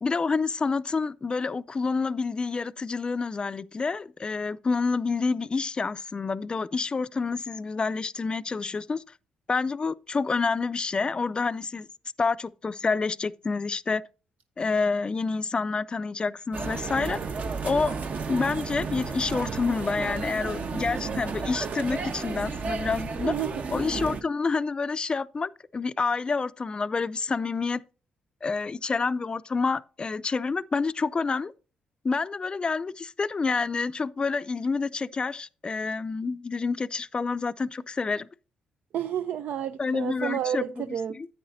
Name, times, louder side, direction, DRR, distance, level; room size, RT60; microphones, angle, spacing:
voice 1, 0.0-9.0 9.5-11.9 12.2-14.0 14.6-17.2 17.6-18.0 18.3-23.3 23.7-27.8 28.4-31.5 32.0-38.3 39.8-40.8 41.1-41.3, left 4 dB, 30° left, 0.4 m, -28 dB
sound 1, 16.5-24.2, right 4 dB, 55° right, 1.0 m, -32 dB
voice 2, 23.2-23.5 38.9-41.2, right 10 dB, 70° right, 0.5 m, -30 dB
10.0 x 8.6 x 2.6 m
supercardioid pair, 65°, 3 cm